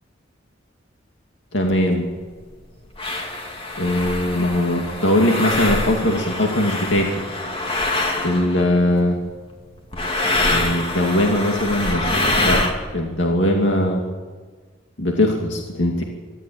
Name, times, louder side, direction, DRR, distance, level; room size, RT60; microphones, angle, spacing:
voice 1, 1.5-2.1 3.8-7.2 8.2-9.2 10.5-12.1 12.4-12.6 12.9-14.0 15.0-16.0, left 1 dB, 75° left, 1 dB, 2.4 m, -20 dB
sound 1, 1.7-1.8 2.5-2.6 3.0-8.8 9.9-12.7, left 2 dB, 30° left, 2.5 m, -24 dB
24.0 x 12.5 x 8.8 m, 1.5 s
head